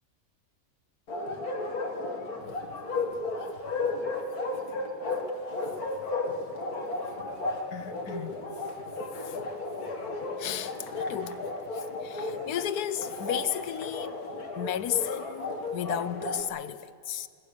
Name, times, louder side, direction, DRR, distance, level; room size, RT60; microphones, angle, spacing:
Bark, 1.1-16.4, left 2 dB, 70° left, 2.4 m, -34 dB
voice 1, 7.7-8.4 9.1-9.4 10.4-11.4 11.7-14.2 14.6-17.3, left 10 dB, 90° left, 1.4 m, -34 dB
27.0 x 21.0 x 6.9 m
omnidirectional pair, 1.6 m